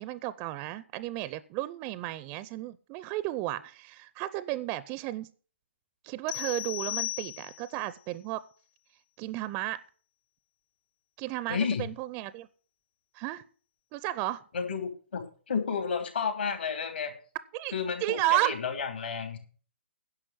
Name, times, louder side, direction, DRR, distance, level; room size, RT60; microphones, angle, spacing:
voice 1, 0.0-5.3 6.0-8.4 9.2-9.8 11.2-12.5 13.1-13.4 13.9-14.4 17.5-17.7 18.0-18.6, right 16 dB, 25° right, 16 dB, 0.5 m, -33 dB
sound 1, 6.3-7.8, left 17 dB, 40° left, 0.5 m, -35 dB
voice 2, 11.5-11.8 14.5-17.1 17.7-19.4, left 6 dB, 65° left, 6 dB, 3.1 m, -31 dB
10.5 x 6.1 x 7.7 m, 0.41 s
figure-of-eight pair, 130°, 6 cm